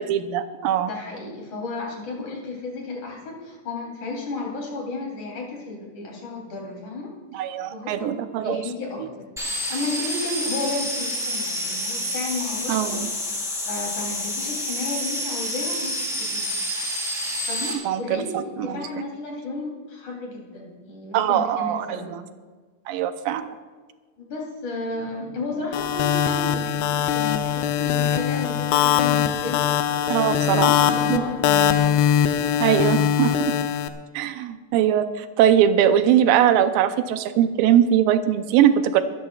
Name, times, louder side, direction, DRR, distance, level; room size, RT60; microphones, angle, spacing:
voice 1, 0.0-0.9 7.3-8.6 9.0-9.1 12.7-13.1 17.8-18.9 21.1-22.2 22.9-23.6 30.1-30.7 31.1-31.2 32.6-33.6 34.1-39.0, right 10 dB, 85° right, 9 dB, 2.0 m, -21 dB
voice 2, 0.9-9.4 9.7-13.0 13.7-16.4 16.8-17.0 17.5-22.2 24.2-31.9, left 3 dB, 45° left, -2 dB, 4.4 m, -33 dB
sound 1, 9.4-17.7, equal, ahead, 2.4 m, -28 dB
sound 2, 25.7-33.9, left 9 dB, 80° left, 2.7 m, -21 dB
23.5 x 14.5 x 2.4 m, 1.4 s
omnidirectional pair, 4.9 m